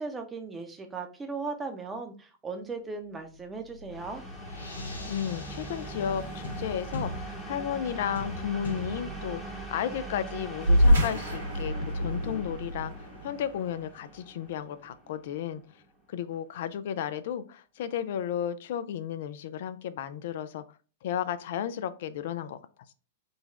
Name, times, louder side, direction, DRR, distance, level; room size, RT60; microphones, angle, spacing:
voice 1, 0.0-4.2, right 4 dB, 15° right, 0.8 m, -37 dB
sound 1, 3.3-14.1, left 1 dB, 85° left, 0.9 m, -43 dB
sound 2, 3.9-15.5, right 2 dB, 5° left, 0.9 m, -42 dB
voice 2, 4.8-15.6 16.1-20.6 21.0-22.6, left 9 dB, 60° left, 0.4 m, -33 dB
sound 3, 10.6-15.5, equal, 85° right, 1.6 m, -27 dB
3.9 x 2.3 x 4.1 m
hypercardioid pair, 105°, 0 cm